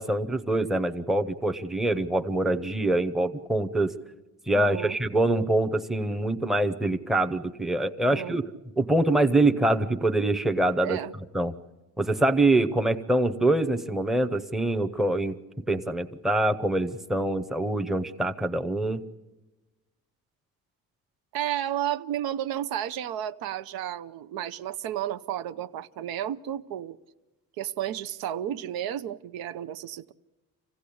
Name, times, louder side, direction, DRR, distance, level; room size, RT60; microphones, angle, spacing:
voice 1, 0.0-4.0 4.5-8.5 8.8-11.0 11.3-11.5 12.0-15.4 15.7-19.0, right 2 dB, ahead, 0.7 m, -25 dB
voice 2, 4.5-5.0 8.0-8.4 10.8-11.1 21.3-27.0 27.6-30.1, right 11 dB, 85° right, 0.8 m, -32 dB
26.0 x 16.0 x 8.5 m
cardioid pair, 155°, 36 cm